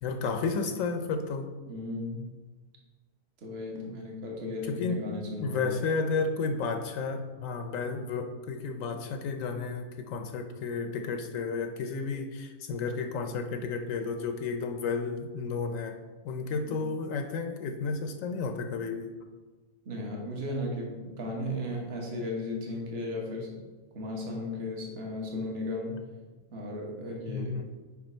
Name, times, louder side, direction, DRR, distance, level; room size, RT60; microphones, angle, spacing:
voice 1, 0.0-1.5 4.6-5.0 5.4-16.0 16.2-19.1 27.3-27.7, left 4 dB, 70° left, 6 dB, 0.9 m, -32 dB
voice 2, 1.7-2.3 3.4-5.9 8.0-8.2 16.7-16.8 19.9-23.7 23.9-26.0 26.5-27.6, left 1 dB, 50° right, -1 dB, 1.3 m, -35 dB
5.9 x 4.9 x 4.3 m, 1.3 s
omnidirectional pair, 1.5 m